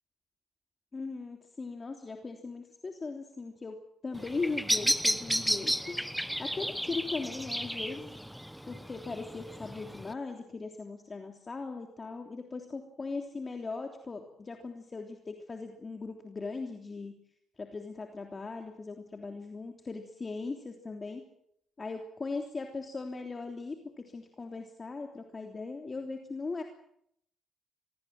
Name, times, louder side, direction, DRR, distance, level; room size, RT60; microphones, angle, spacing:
voice 1, 0.9-3.8 4.0-6.0 6.4-8.1 8.7-17.1 17.6-21.2 21.8-26.6, left 3 dB, 30° left, 4 dB, 3.2 m, -39 dB
Bird vocalization bird call bird song, 4.1-10.1, equal, ahead, 1.1 m, -33 dB
25.5 x 20.0 x 7.7 m, 0.71 s
cardioid pair, 90°, 0 cm